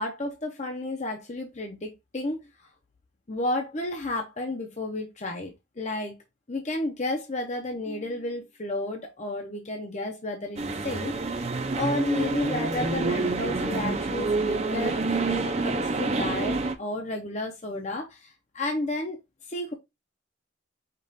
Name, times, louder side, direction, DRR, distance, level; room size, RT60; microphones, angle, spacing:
voice 1, 0.0-2.7 3.3-6.2 6.5-11.4 11.7-19.2 19.5-19.7, left 2 dB, 35° left, 0.7 m, -32 dB
sound 1, 10.6-16.7, right 3 dB, 35° right, 0.6 m, -27 dB
5.2 x 2.5 x 3.9 m
head